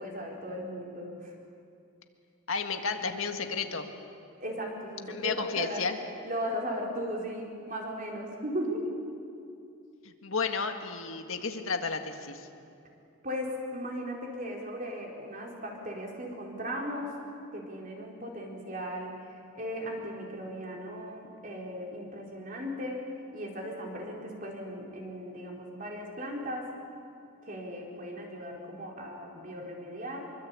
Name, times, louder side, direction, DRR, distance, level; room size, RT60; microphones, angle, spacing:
voice 1, 0.0-1.3 4.4-5.8 6.2-9.0 13.2-17.2 17.5-23.0 23.3-26.7 27.4-30.3, equal, 40° right, -1 dB, 4.4 m, -37 dB
voice 2, 2.5-3.9 5.1-6.0 10.0-12.5, left 5 dB, 70° left, 5 dB, 1.8 m, -32 dB
25.5 x 23.5 x 8.6 m, 2.5 s
head